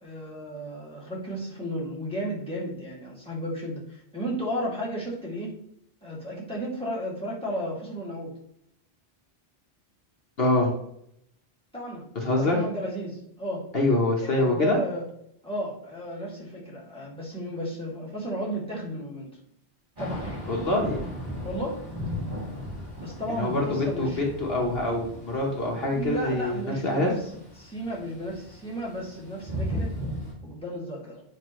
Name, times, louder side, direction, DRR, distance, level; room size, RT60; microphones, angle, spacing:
voice 1, 0.0-5.5 6.0-8.3 11.7-12.0 12.4-13.7 14.2-15.0 15.4-19.3 20.0-20.4 21.4-21.8 23.0-24.2 25.9-27.1 27.6-29.9 30.4-31.2, equal, 5° left, -5 dB, 2.3 m, -33 dB
voice 2, 10.4-10.7 12.1-12.6 13.7-14.8 20.5-21.0 23.4-27.1, left 2 dB, 60° left, -1 dB, 1.4 m, -25 dB
Thunder / Rain, 20.0-30.3, equal, 45° right, 2.9 m, -37 dB
7.9 x 5.2 x 3.1 m, 0.74 s
omnidirectional pair, 1.1 m